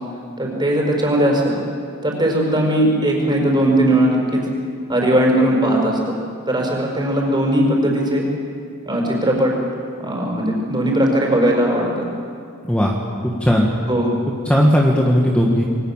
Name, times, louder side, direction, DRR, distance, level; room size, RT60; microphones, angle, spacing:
voice 1, 0.4-1.6 2.0-4.4 4.9-6.2 6.5-8.2 8.9-9.5 10.0-12.1 13.9-14.1, right 1 dB, 20° right, 0 dB, 5.8 m, -18 dB
voice 2, 13.2-13.7 14.3-15.6, equal, 5° left, -2 dB, 2.0 m, -16 dB
27.5 x 23.0 x 7.5 m, 2.4 s
head